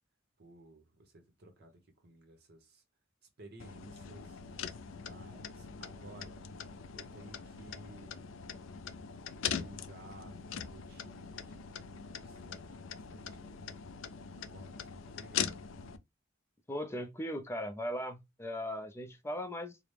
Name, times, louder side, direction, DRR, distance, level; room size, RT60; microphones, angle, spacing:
voice 1, 0.4-2.8 3.4-4.4 5.0-6.6 6.9-8.3 9.4-13.7 14.3-15.7, right 1 dB, 55° right, 1.0 m, -56 dB
sound 1, 3.6-16.0, left 7 dB, 75° left, 0.4 m, -42 dB
voice 2, 16.7-19.8, equal, 15° left, 0.5 m, -38 dB
4.9 x 2.1 x 3.3 m
head